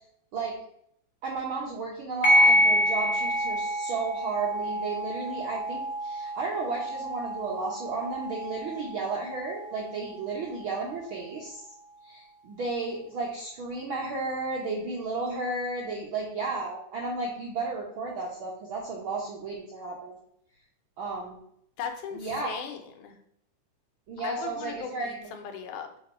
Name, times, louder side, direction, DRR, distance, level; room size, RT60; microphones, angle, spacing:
voice 1, 1.2-11.6 12.0-20.1 21.0-21.4 22.1-22.5 24.1-25.3, right 3 dB, 70° right, -3 dB, 1.2 m, -33 dB
sound 1, 2.2-11.2, equal, 45° left, 1.2 m, -28 dB
voice 2, 21.8-23.2 24.2-26.0, left 7 dB, 80° left, 5 dB, 2.2 m, -38 dB
6.7 x 3.5 x 5.3 m, 0.72 s
omnidirectional pair, 3.7 m